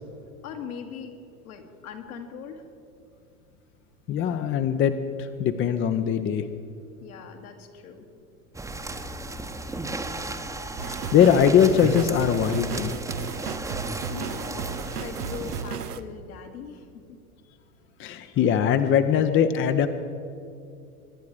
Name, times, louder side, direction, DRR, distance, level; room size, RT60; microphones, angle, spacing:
voice 1, 0.4-1.2 1.4-2.6 7.0-8.1 14.1-14.7 15.0-17.2, left 7 dB, 70° left, 3 dB, 2.2 m, -40 dB
voice 2, 4.1-4.9 5.2-6.4 10.8-13.0 18.0-19.9, left 8 dB, 25° left, 9 dB, 0.7 m, -21 dB
sound 1, 8.5-15.6, right 2 dB, 5° right, 1.0 m, -35 dB
sound 2, 10.8-16.0, right 6 dB, 85° right, 0.9 m, -34 dB
24.0 x 10.5 x 5.0 m, 2.6 s
hypercardioid pair, 90°, 45 cm